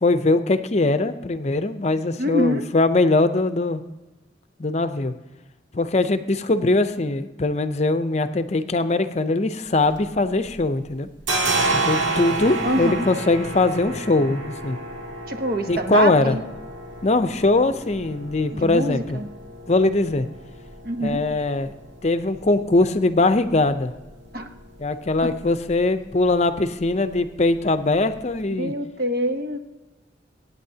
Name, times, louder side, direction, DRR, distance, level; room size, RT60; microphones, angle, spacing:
voice 1, 0.0-3.8 4.6-5.1 5.7-11.1 11.7-14.8 15.7-16.4 17.0-19.2 19.7-20.3 21.0-21.7 22.0-23.9 24.8-28.7, left 2 dB, 35° left, 11 dB, 0.6 m, -21 dB
voice 2, 2.2-2.6 12.6-13.1 15.3-16.4 18.5-19.3 20.8-21.2 24.3-24.5 28.6-29.6, equal, 55° right, 7 dB, 1.0 m, -25 dB
sound 1, 9.7-10.6 10.9-28.4, right 2 dB, 90° right, 1.9 m, -32 dB
23.5 x 9.2 x 2.8 m, 1.1 s
head